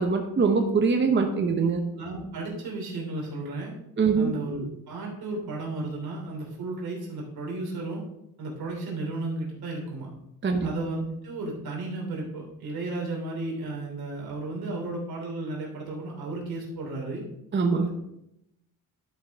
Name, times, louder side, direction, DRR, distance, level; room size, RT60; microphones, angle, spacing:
voice 1, 0.0-1.8 4.0-4.3 10.4-10.7 17.5-17.9, right 5 dB, 30° right, 4 dB, 0.9 m, -23 dB
voice 2, 1.9-3.7 4.2-8.0 8.4-10.1 10.6-17.2 17.7-17.9, right 2 dB, 85° right, -1 dB, 3.0 m, -34 dB
11.5 x 5.9 x 3.5 m, 0.83 s
cardioid pair, 120°, 36 cm